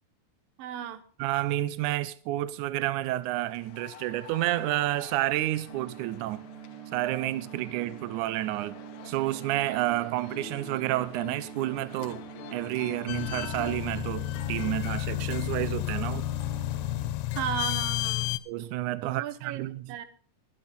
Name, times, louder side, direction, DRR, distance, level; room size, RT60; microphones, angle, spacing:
voice 1, 0.6-1.0 17.4-18.3 19.0-19.6 19.9-20.1, right 9 dB, 70° right, 2.7 m, -35 dB
voice 2, 1.2-6.4 6.9-8.7 9.0-12.2 12.5-16.3 18.5-20.0, right 16 dB, 90° right, 1.7 m, -30 dB
sound 1, 2.9-14.0, left 10 dB, 70° left, 1.9 m, -47 dB
sound 2, 5.7-17.1, right 10 dB, 40° right, 2.9 m, -45 dB
sound 3, 13.1-18.4, left 17 dB, 90° left, 2.8 m, -31 dB
20.5 x 9.0 x 3.9 m
omnidirectional pair, 4.5 m